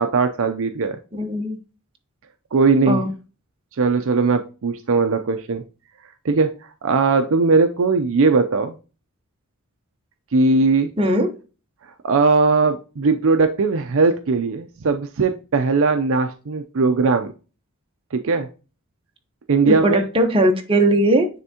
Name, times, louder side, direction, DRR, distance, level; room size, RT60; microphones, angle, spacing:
voice 1, 0.0-1.0 2.5-3.0 3.8-5.6 6.2-6.5 6.8-8.8 10.3-10.9 12.0-17.3 18.1-18.5 19.5-20.0, right 4 dB, 65° right, 7 dB, 0.5 m, -19 dB
voice 2, 1.1-1.6 2.9-3.1 11.0-11.3 19.7-21.3, right 1 dB, 25° right, 3 dB, 1.0 m, -19 dB
9.6 x 3.5 x 2.8 m, 0.33 s
head